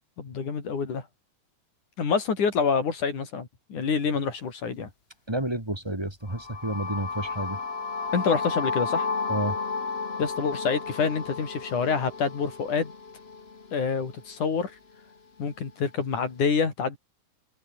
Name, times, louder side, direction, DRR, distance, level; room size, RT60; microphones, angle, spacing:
voice 1, 0.2-1.1 2.0-4.9 8.1-9.1 10.2-12.9 13.7-14.7 15.4-17.0, left 5 dB, 85° left, 5.6 m, -27 dB
voice 2, 5.3-7.6 9.3-9.6, right 1 dB, 10° right, 2.7 m, -30 dB
sound 1, 6.3-14.2, left 4 dB, 25° left, 1.5 m, -33 dB
omnidirectional pair, 3.4 m